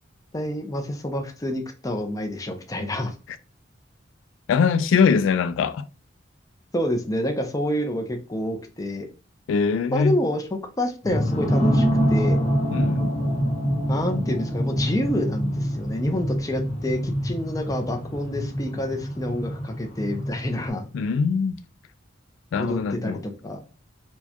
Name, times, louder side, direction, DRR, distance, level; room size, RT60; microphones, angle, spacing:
voice 1, 0.3-3.1 6.7-9.1 9.9-10.5 10.8-12.4 13.9-20.9 22.6-23.6, left 1 dB, 20° left, 0.5 m, -28 dB
voice 2, 4.5-5.8 9.5-10.2 12.7-13.1 20.9-21.6 22.5-23.2, left 5 dB, 85° left, 0.3 m, -22 dB
sound 1, 11.0-20.7, equal, 40° left, 1.0 m, -25 dB
4.4 x 2.2 x 2.8 m
head